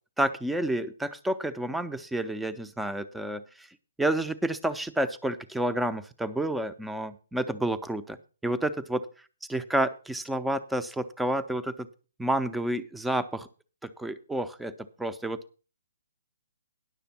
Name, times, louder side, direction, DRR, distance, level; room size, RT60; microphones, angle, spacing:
voice 1, 0.2-3.7 4.0-8.2 8.4-9.1 9.5-11.9 12.2-13.5 13.8-14.7 15.0-15.4, right 1 dB, 5° right, 11 dB, 0.6 m, -29 dB
10.5 x 6.6 x 5.9 m, 0.36 s
hypercardioid pair, 140°, 0 cm